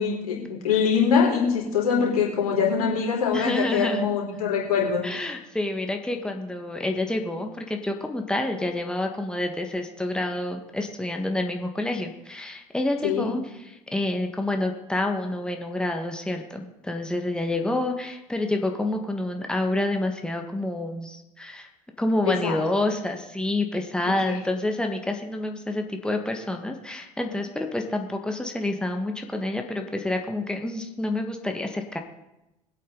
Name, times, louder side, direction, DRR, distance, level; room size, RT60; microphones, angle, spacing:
voice 1, 0.0-5.1 13.0-13.3 22.3-22.6 24.3-24.4, left 6 dB, 75° left, -2 dB, 4.1 m, -23 dB
voice 2, 3.3-4.0 5.0-21.7 22.0-32.0, left 2 dB, 5° left, 3 dB, 1.7 m, -28 dB
21.0 x 8.4 x 4.0 m, 0.92 s
figure-of-eight pair, 70°, 19 cm